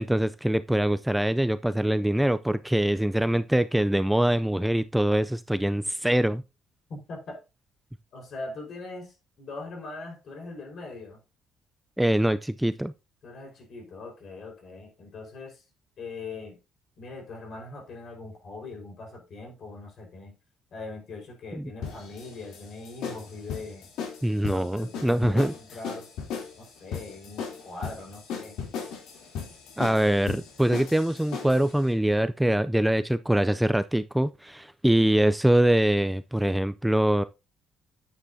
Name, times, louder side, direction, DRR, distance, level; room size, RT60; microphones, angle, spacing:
voice 1, 0.0-6.4 12.0-12.9 21.5-21.7 24.2-25.5 29.8-37.2, right 1 dB, 5° right, 0.4 m, -24 dB
voice 2, 6.9-7.4 8.1-11.2 13.2-15.6 16.0-16.6 17.0-20.3 20.7-23.9 24.4-26.1 26.6-28.6, left 3 dB, 50° left, 4.5 m, -41 dB
sound 1, 21.8-31.7, left 6 dB, 80° left, 3.2 m, -37 dB
10.0 x 8.5 x 2.7 m
cardioid pair, 120°, 0 cm